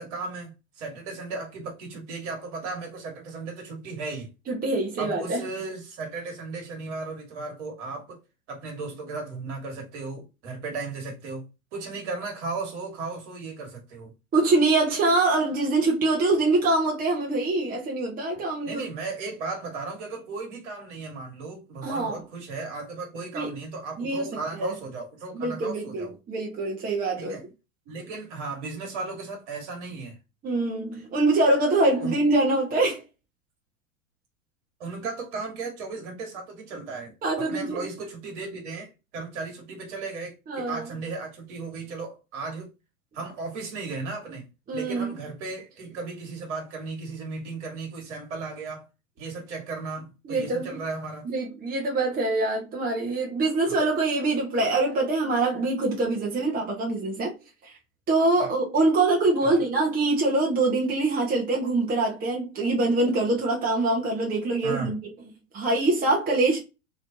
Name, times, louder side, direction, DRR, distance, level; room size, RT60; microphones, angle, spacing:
voice 1, 0.0-4.3 5.0-8.2 8.5-11.5 11.7-14.1 18.7-26.1 27.2-27.4 27.9-30.2 32.0-32.2 34.8-42.7 43.1-44.4 44.7-48.9 49.2-51.3 53.6-53.8 58.4-58.5 59.4-59.6 64.6-64.9, right 3 dB, 60° right, 1.9 m, -35 dB
voice 2, 4.5-5.4 14.3-18.8 21.8-22.2 23.3-23.6 24.0-24.3 24.6-24.7 25.3-27.5 30.4-33.0 37.2-37.8 40.5-40.9 44.7-45.2 50.2-50.8 51.2-57.3 57.6-57.7 58.1-65.0 65.5-66.6, right 2 dB, 20° right, 1.1 m, -24 dB
3.2 x 3.1 x 2.7 m
hypercardioid pair, 95°, 41 cm